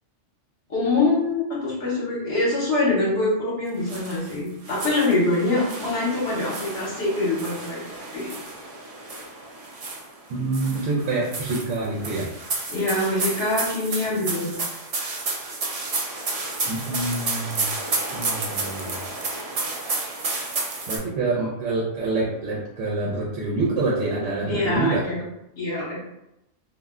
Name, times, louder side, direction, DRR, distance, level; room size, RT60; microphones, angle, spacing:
voice 1, 0.7-8.3 12.7-14.5 24.5-25.2 25.6-26.0, left 2 dB, 65° left, -6 dB, 1.0 m, -24 dB
sound 1, 3.9-4.3 4.6-10.2 10.5-21.0, right 3 dB, 55° right, 0.4 m, -31 dB
voice 2, 10.3-12.3 16.6-17.7 18.1-19.0 20.9-25.1, right 3 dB, 85° right, -5 dB, 1.0 m, -26 dB
2.4 x 2.1 x 3.5 m, 0.87 s
omnidirectional pair, 1.2 m